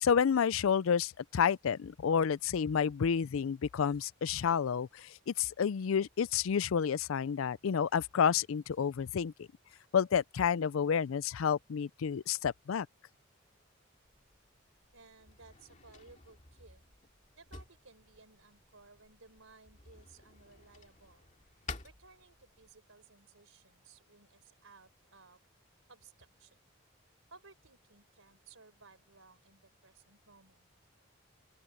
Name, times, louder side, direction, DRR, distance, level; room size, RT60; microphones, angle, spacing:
voice 1, 0.0-9.5 9.9-12.9, left 7 dB, 85° left, 0.4 m, -30 dB
Drawer open or close, 14.0-22.8, left 3 dB, 35° left, 2.3 m, -52 dB
voice 2, 14.9-16.8 17.3-21.3 21.8-25.4 25.9-26.6 27.3-30.7, right 4 dB, 90° right, 4.3 m, -59 dB
open air
head